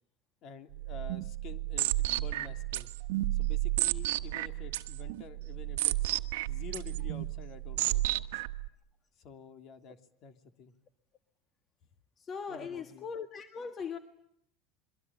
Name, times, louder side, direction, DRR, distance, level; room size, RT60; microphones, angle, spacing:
voice 1, 0.4-2.9 3.3-6.1 6.5-8.2 9.2-10.7 12.5-13.1, left 6 dB, 55° left, 7 dB, 3.1 m, -49 dB
sound 1, 0.7-8.7, right 17 dB, 80° right, 1.2 m, -32 dB
voice 2, 12.2-14.0, left 6 dB, 35° left, 8 dB, 1.6 m, -39 dB
27.5 x 23.5 x 8.9 m, 0.73 s
supercardioid pair, 100°, 0 cm